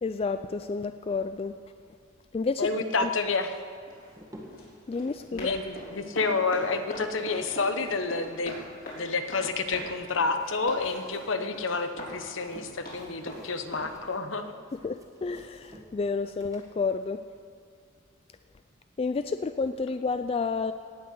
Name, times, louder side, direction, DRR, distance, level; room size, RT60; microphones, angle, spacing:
voice 1, 0.0-1.6 2.3-2.7 3.0-3.1 4.9-5.5 14.7-17.2 19.0-20.7, left 4 dB, 30° left, 10 dB, 0.3 m, -30 dB
voice 2, 2.6-3.6 5.3-8.6 8.9-14.5, left 4 dB, 70° left, 8 dB, 0.9 m, -29 dB
Run, 3.5-13.9, left 1 dB, 50° left, 4.0 m, -43 dB
sound 1, 3.7-4.8 5.9-8.3 8.6-10.4 10.7-11.6 12.1-18.2, equal, 15° right, 1.8 m, -54 dB
18.0 x 6.6 x 8.0 m, 2.2 s
head